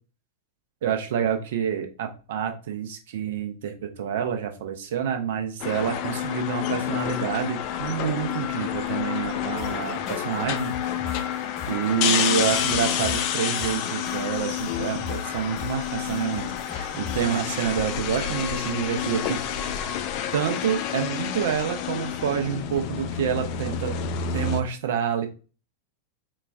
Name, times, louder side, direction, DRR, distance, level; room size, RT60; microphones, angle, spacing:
voice 1, 0.8-11.2 11.7-19.8 20.3-24.0 24.3-25.3, right 8 dB, 55° right, 6 dB, 0.6 m, -28 dB
sound 1, 5.6-24.6, left 9 dB, 45° left, 0.3 m, -29 dB
sound 2, 9.6-17.4, left 6 dB, ahead, 1.0 m, -39 dB
4.0 x 2.3 x 2.3 m, 0.34 s
figure-of-eight pair, 90°, 0 cm